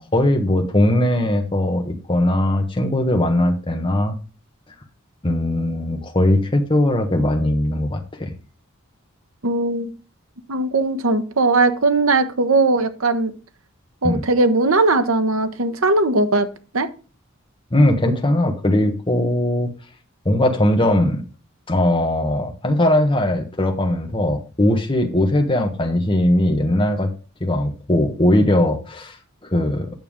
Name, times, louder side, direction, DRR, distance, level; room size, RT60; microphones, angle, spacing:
voice 1, 0.0-4.1 5.2-8.3 14.0-14.2 17.7-19.7 20.2-21.2 21.7-27.1 27.4-29.2 29.4-29.9, left 1 dB, 25° left, 3 dB, 1.3 m, -19 dB
voice 2, 9.4-9.9 10.5-13.3 14.0-16.5 16.7-16.9, right 2 dB, 85° right, 9 dB, 1.0 m, -19 dB
9.2 x 6.9 x 3.7 m, 0.35 s
head